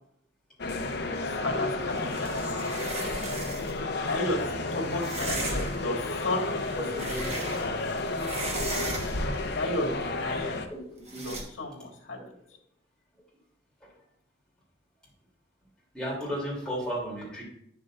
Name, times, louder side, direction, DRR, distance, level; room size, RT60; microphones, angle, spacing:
sound 1, 0.6-10.7, left 2 dB, 55° left, 0.7 m, -32 dB
voice 1, 1.4-2.3 4.0-7.4 9.5-10.6 11.1-12.2, left 1 dB, 75° left, 0 dB, 1.8 m, -33 dB
sound 2, 1.9-3.8 5.0-5.9 6.5-7.9 8.1-9.4 11.1-11.4, right 2 dB, 30° right, 1.2 m, -36 dB
voice 2, 15.9-17.4, equal, 5° left, -6 dB, 2.9 m, -33 dB
9.7 x 6.7 x 2.5 m, 0.73 s
head